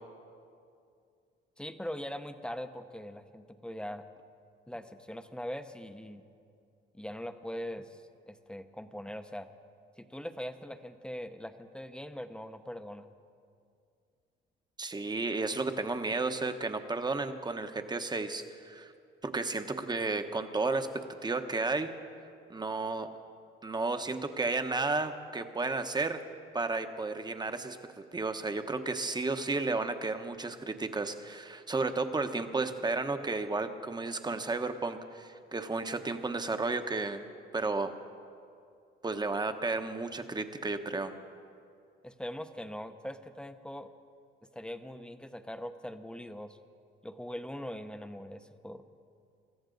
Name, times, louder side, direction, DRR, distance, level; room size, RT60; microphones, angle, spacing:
voice 1, 1.6-4.1 4.7-6.2 6.9-9.5 10.0-13.1 42.0-43.9 44.5-46.6 47.0-48.8, equal, 5° left, 9 dB, 0.8 m, -41 dB
voice 2, 14.8-18.9 19.2-20.9 21.2-21.9 22.5-23.1 23.6-26.2 26.5-27.8 28.1-37.2 37.5-37.9 39.0-41.1, right 3 dB, 20° right, 7 dB, 1.1 m, -32 dB
25.0 x 14.0 x 3.9 m, 2.4 s
cardioid pair, 90°, 20 cm